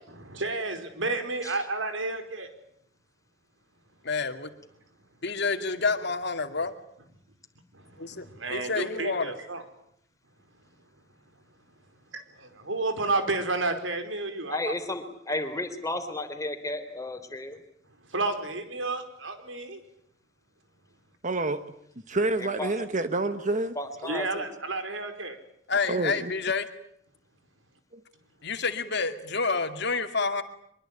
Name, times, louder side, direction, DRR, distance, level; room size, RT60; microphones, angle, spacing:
voice 1, 0.2-2.5 7.7-9.6 12.1-14.7 18.0-19.8 24.0-25.4, right 3 dB, 85° right, 8 dB, 4.8 m, -31 dB
voice 2, 4.0-4.5 5.2-6.7 8.0-9.3 25.7-26.7 28.4-30.4, left 4 dB, 60° left, 7 dB, 2.4 m, -28 dB
voice 3, 14.5-17.6 22.4-22.7 23.8-24.5, left 2 dB, 20° left, 7 dB, 3.6 m, -33 dB
voice 4, 21.2-21.6 22.1-23.7 25.9-26.3, right 2 dB, 40° right, 10 dB, 1.3 m, -27 dB
24.0 x 23.0 x 9.0 m, 0.71 s
head